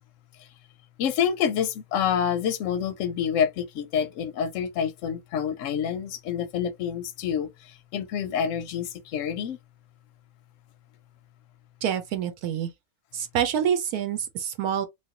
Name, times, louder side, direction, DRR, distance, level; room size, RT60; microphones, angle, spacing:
voice 1, 1.0-9.6, left 8 dB, 65° left, 0.8 m, -27 dB
voice 2, 11.8-12.7 13.1-14.9, right 9 dB, 75° right, 1.1 m, -27 dB
3.1 x 2.5 x 2.8 m
omnidirectional pair, 1.6 m